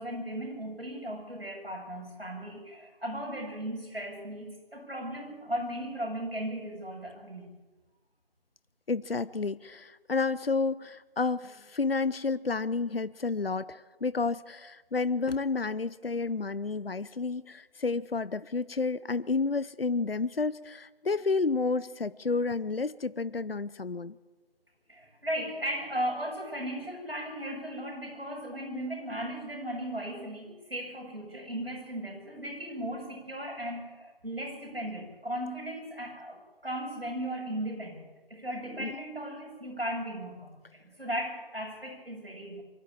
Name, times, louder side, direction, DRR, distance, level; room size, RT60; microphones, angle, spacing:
voice 1, 0.0-7.5 24.9-42.6, right 1 dB, 75° right, -1 dB, 8.0 m, -36 dB
voice 2, 8.9-24.1 38.8-38.9, left 4 dB, 70° left, 16 dB, 0.7 m, -30 dB
23.5 x 13.0 x 8.8 m, 1.2 s
figure-of-eight pair, 175°, 30 cm